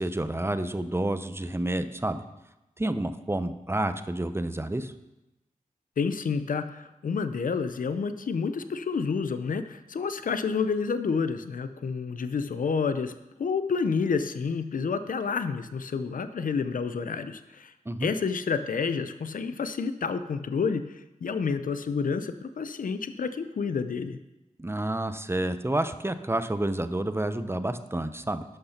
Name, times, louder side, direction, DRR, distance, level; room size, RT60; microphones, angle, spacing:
voice 1, 0.0-2.2 2.8-4.9 17.9-18.1 24.6-28.4, right 1 dB, 15° right, 10 dB, 0.8 m, -29 dB
voice 2, 6.0-13.1 13.4-17.7 18.0-24.2, left 5 dB, 75° left, 11 dB, 0.6 m, -29 dB
11.5 x 6.6 x 5.8 m, 0.98 s
cardioid pair, 45°, 14 cm